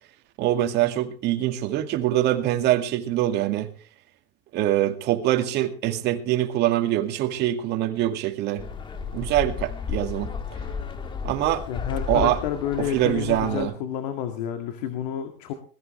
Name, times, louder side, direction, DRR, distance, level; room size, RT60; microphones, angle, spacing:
voice 1, 0.4-3.7 4.5-8.6 9.1-10.3 11.2-11.6 12.1-12.4 12.8-13.7, right 13 dB, 55° right, 2.1 m, -24 dB
sound 1, 8.6-13.6, left 5 dB, 25° left, 1.7 m, -33 dB
voice 2, 11.7-15.5, left 9 dB, 90° left, 2.1 m, -30 dB
20.5 x 14.5 x 3.2 m
cardioid pair, 140°, 21 cm